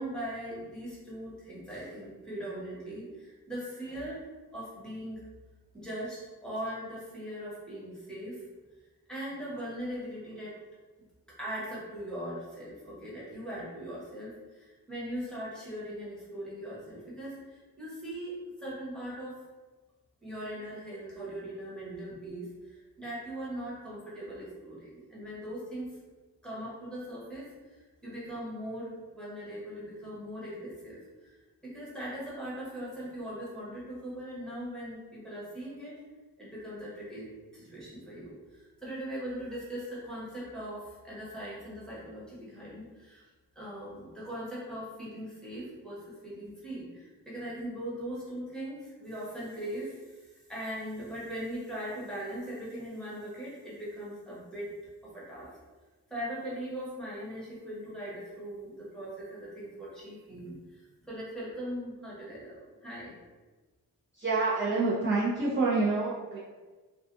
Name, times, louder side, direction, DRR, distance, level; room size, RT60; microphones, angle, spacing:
voice 1, 0.0-4.2 4.5-5.2 5.7-8.4 9.1-10.5 11.4-19.4 20.2-25.9 26.4-31.4 31.6-36.0 36.4-37.3 37.5-43.2 43.5-54.7 55.0-55.5 56.1-63.1, equal, ahead, -9 dB, 1.1 m, -40 dB
voice 2, 64.1-66.4, right 3 dB, 30° right, -10 dB, 0.6 m, -27 dB
2.4 x 2.4 x 2.5 m, 1.3 s
cardioid pair, 85°, 37 cm